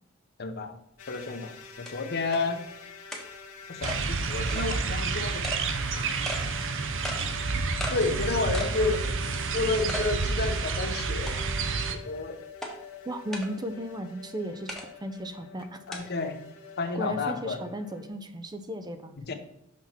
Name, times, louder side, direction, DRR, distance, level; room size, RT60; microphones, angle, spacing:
voice 1, 0.4-0.8 1.1-1.5 1.9-2.6 3.7-5.6 5.9-6.1 7.9-9.0 9.5-11.4 11.9-12.4 15.9-16.4 16.8-17.6 19.3-19.4, left 3 dB, 50° left, 7 dB, 0.9 m, -30 dB
sound 1, 1.0-18.1, left 5 dB, 70° left, 1.1 m, -47 dB
sound 2, 1.1-1.2 1.9-2.0 2.3-2.4 3.1-3.3 3.8-4.0 4.5-4.7 5.4-5.6 6.3-6.4 7.0-7.2 7.8-8.0 8.5-8.8 9.2-9.3 9.9-10.1 10.5-10.6 11.3-11.7 12.6-12.7 13.3-13.5 14.7-14.9 15.9-16.0, left 1 dB, ahead, 1.1 m, -35 dB
sound 3, 3.8-12.0, right 4 dB, 60° right, 0.7 m, -29 dB
voice 2, 13.1-15.8 16.9-19.1, equal, 20° right, 8 dB, 0.5 m, -35 dB
6.0 x 5.7 x 4.4 m, 0.81 s
head